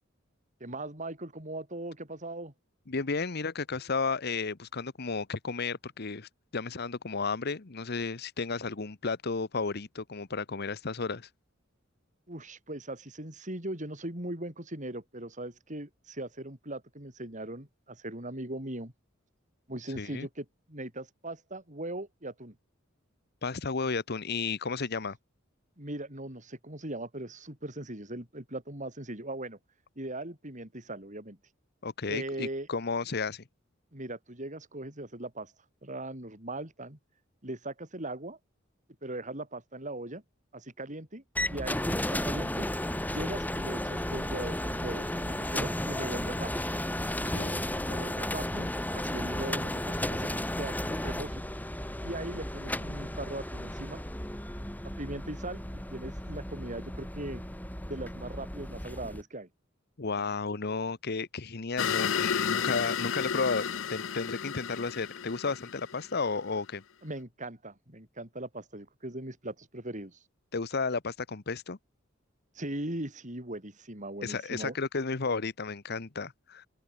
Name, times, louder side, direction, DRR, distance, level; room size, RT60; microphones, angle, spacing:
voice 1, 0.6-2.5 12.3-18.9 19.7-22.5 25.8-29.6 29.9-31.4 32.1-32.7 33.9-35.5 35.8-37.0 37.4-38.4 39.0-40.2 40.5-42.7 43.1-46.5 47.9-51.4 52.0-54.0 55.0-57.4 57.9-59.5 67.0-70.2 72.5-74.8, right 1 dB, 40° right, 6.8 m, -39 dB
voice 2, 2.9-11.3 20.0-20.3 23.4-25.2 31.8-33.4 47.3-47.7 60.0-66.8 70.5-71.8 74.2-76.7, left 4 dB, 55° left, 1.1 m, -33 dB
sound 1, 41.3-59.2, left 1 dB, 10° left, 4.7 m, -34 dB
sound 2, 61.8-66.4, left 7 dB, 75° left, 0.6 m, -32 dB
open air
head